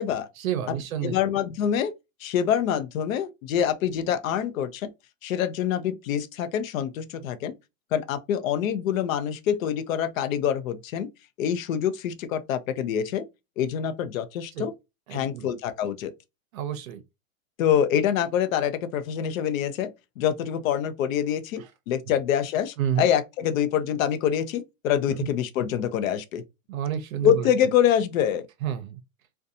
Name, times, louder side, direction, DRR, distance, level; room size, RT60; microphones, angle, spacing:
voice 1, 0.4-1.2 7.2-7.3 14.5-14.7 15.1-15.5 16.5-17.0 21.6-21.7 22.8-23.1 25.1-25.3 26.7-27.5 28.6-29.0, right 9 dB, 75° right, 0.6 m, -30 dB
voice 2, 1.0-1.9 2.2-4.9 5.2-7.5 7.9-11.1 11.4-13.3 13.6-14.7 15.1-16.1 17.6-26.4 27.2-28.5, left 9 dB, 70° left, 0.6 m, -25 dB
2.5 x 2.2 x 2.6 m
supercardioid pair, 165°, 42 cm